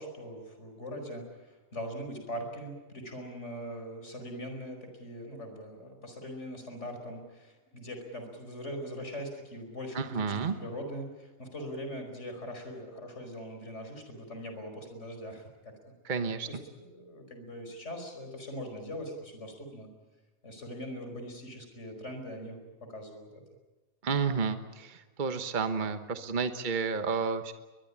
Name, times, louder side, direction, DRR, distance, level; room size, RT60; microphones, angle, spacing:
voice 1, 0.0-15.8 16.5-19.9 20.4-23.4, equal, 55° left, 5 dB, 5.4 m, -41 dB
voice 2, 9.9-10.5 16.0-16.5 24.0-27.5, right 5 dB, 35° right, 8 dB, 1.3 m, -31 dB
22.5 x 21.5 x 8.7 m, 1.2 s
omnidirectional pair, 1.4 m